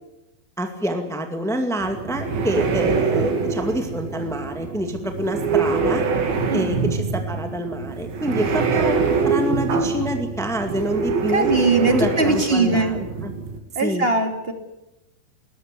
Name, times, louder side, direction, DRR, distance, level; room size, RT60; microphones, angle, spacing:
voice 1, 0.6-6.1 6.5-11.5 11.9-13.3 13.8-14.1, equal, ahead, 5 dB, 0.8 m, -27 dB
sound 1, 1.8-13.6, right 4 dB, 75° right, 4.6 m, -24 dB
voice 2, 6.5-6.8 11.3-12.9 13.7-14.5, right 3 dB, 20° right, 5 dB, 2.2 m, -20 dB
21.0 x 18.5 x 8.3 m, 0.90 s
omnidirectional pair, 4.3 m